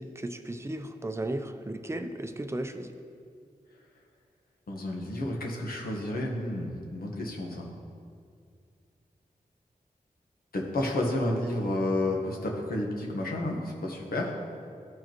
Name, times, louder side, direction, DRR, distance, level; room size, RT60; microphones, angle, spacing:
voice 1, 0.0-2.9, right 1 dB, 20° right, 7 dB, 0.5 m, -35 dB
voice 2, 4.7-7.7 10.5-14.3, left 1 dB, 85° left, -1 dB, 1.2 m, -31 dB
14.0 x 4.8 x 3.0 m, 2.3 s
wide cardioid pair, 65°, 15 cm